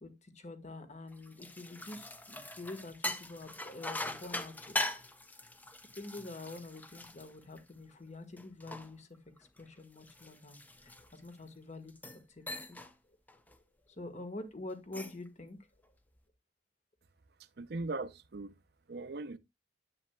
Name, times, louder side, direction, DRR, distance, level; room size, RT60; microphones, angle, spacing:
voice 1, 0.0-4.8 5.9-12.8 13.5-13.6 13.9-15.6, left 2 dB, 40° left, 1.5 m, -47 dB
sound 1, 1.1-7.9 8.4-11.4 11.9-12.2 12.5-12.9 13.3-13.6 14.7-15.3, left 1 dB, 10° left, 0.7 m, -41 dB
voice 2, 17.6-18.5 18.9-19.4, right 3 dB, 65° right, 0.6 m, -39 dB
9.7 x 8.1 x 2.3 m
head